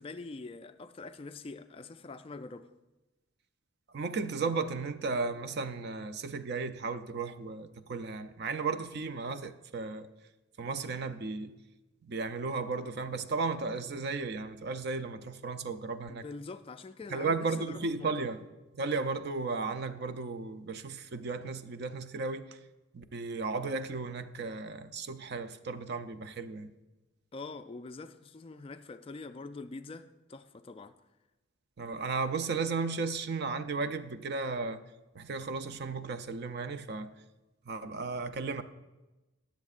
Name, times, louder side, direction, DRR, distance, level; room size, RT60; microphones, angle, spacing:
voice 1, 0.0-2.7 16.1-18.3 27.3-30.9, left 3 dB, 25° left, 0.3 m, -44 dB
voice 2, 3.9-10.1 10.6-11.6 12.0-16.2 17.1-18.4 18.7-22.6 22.9-26.7 31.8-34.8 35.1-37.1 37.7-38.6, right 4 dB, 50° right, 0.5 m, -35 dB
20.5 x 7.2 x 2.5 m
head